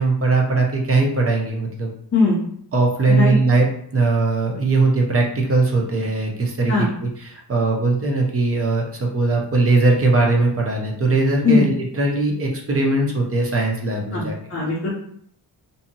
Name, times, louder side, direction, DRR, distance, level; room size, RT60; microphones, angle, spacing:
voice 1, 0.0-1.9 2.7-14.3, right 3 dB, 30° right, 0 dB, 0.5 m, -20 dB
voice 2, 14.1-14.9, left 4 dB, 30° left, -5 dB, 0.5 m, -19 dB
2.7 x 2.6 x 2.6 m, 0.64 s
wide cardioid pair, 155°, 44 cm